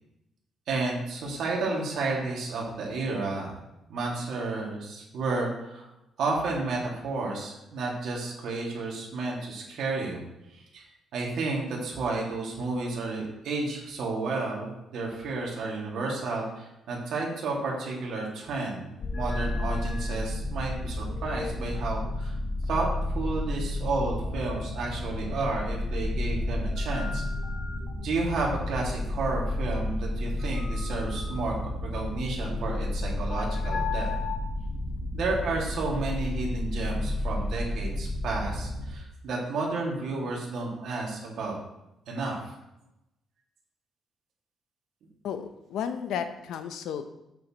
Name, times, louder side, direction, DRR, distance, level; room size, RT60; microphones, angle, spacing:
voice 1, 0.7-3.5 3.9-5.9 6.2-10.2 10.5-10.8 11.1-22.4 22.7-22.9 23.1-27.2 28.0-31.5 31.8-34.2 35.1-41.5 42.1-42.6, right 3 dB, 65° right, -2 dB, 2.0 m, -31 dB
sound 1, 19.0-38.9, left 1 dB, 40° left, 0.8 m, -31 dB
voice 2, 45.2-47.0, left 8 dB, 80° left, 9 dB, 0.6 m, -33 dB
7.7 x 7.0 x 3.0 m, 0.91 s
cardioid pair, 160°, 0 cm